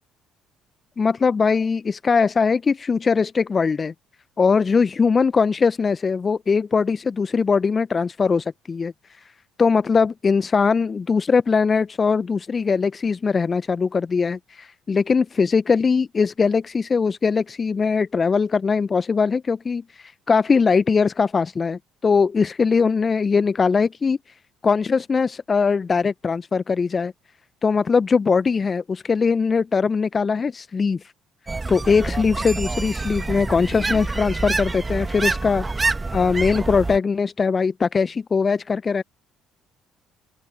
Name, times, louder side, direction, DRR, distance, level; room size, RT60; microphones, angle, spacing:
voice 1, 1.0-3.9 4.4-8.9 9.6-24.2 24.6-27.1 27.6-31.0 31.7-35.6 36.1-39.0, left 5 dB, 35° left, 0.8 m, -21 dB
sound 1, 31.5-37.0, right 3 dB, 25° right, 2.1 m, -27 dB
open air
hypercardioid pair, 50°, 0 cm